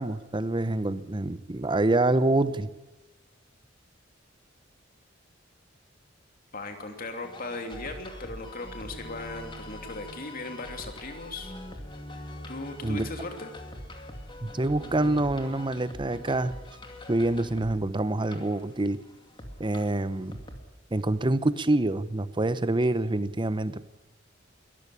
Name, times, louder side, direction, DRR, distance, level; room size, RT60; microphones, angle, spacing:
voice 1, 0.0-2.7 12.8-13.1 14.4-16.5 17.1-19.0 19.6-20.4 20.9-23.9, right 2 dB, 25° right, 14 dB, 0.8 m, -26 dB
voice 2, 6.5-11.5 12.5-13.5, left 2 dB, 45° left, 5 dB, 3.0 m, -38 dB
sound 1, 7.2-20.6, left 1 dB, 25° left, 2.4 m, -43 dB
22.0 x 14.0 x 10.0 m, 1.1 s
head